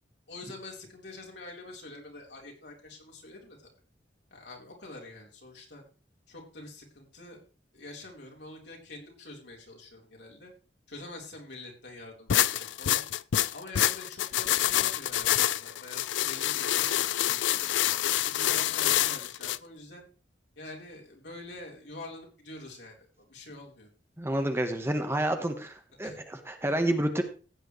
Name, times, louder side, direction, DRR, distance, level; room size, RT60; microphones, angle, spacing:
voice 1, 0.3-3.6 4.3-5.8 6.3-7.4 7.7-10.5 10.9-13.0 13.5-17.7 18.0-20.0 20.6-23.9 26.0-26.2, left 2 dB, 65° left, 0 dB, 4.0 m, -46 dB
sound 1, 12.3-19.6, left 12 dB, 85° left, 0.4 m, -27 dB
voice 2, 24.2-27.2, right 1 dB, 15° right, 6 dB, 1.2 m, -29 dB
15.0 x 9.2 x 3.2 m, 0.36 s
head